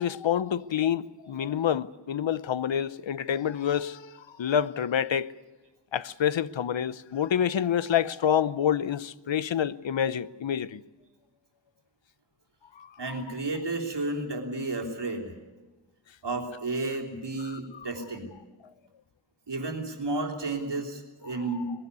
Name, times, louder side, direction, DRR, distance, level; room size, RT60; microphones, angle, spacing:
voice 1, 0.0-5.3 5.9-10.8 12.8-13.0 17.4-17.9 21.5-21.6, left 9 dB, 75° left, 0.7 m, -28 dB
voice 2, 13.0-15.4 16.2-18.3 19.5-21.7, right 2 dB, 65° right, 3.2 m, -32 dB
21.0 x 15.5 x 9.5 m
wide cardioid pair, 80°, 46 cm